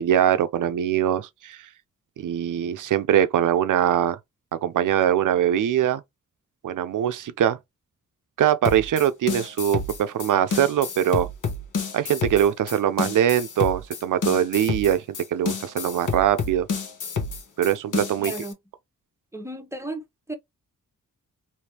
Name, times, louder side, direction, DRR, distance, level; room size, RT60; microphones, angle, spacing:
voice 1, 0.0-1.6 2.2-4.2 4.5-6.0 6.6-7.6 8.4-11.3 11.9-15.0 15.3-16.7 17.6-18.3, right 10 dB, 75° right, 0.6 m, -22 dB
sound 1, 8.6-18.5, left 5 dB, 75° left, 1.0 m, -29 dB
voice 2, 18.2-18.6 19.3-20.3, right 2 dB, 10° right, 0.9 m, -34 dB
3.3 x 2.8 x 2.8 m
cardioid pair, 80°, 31 cm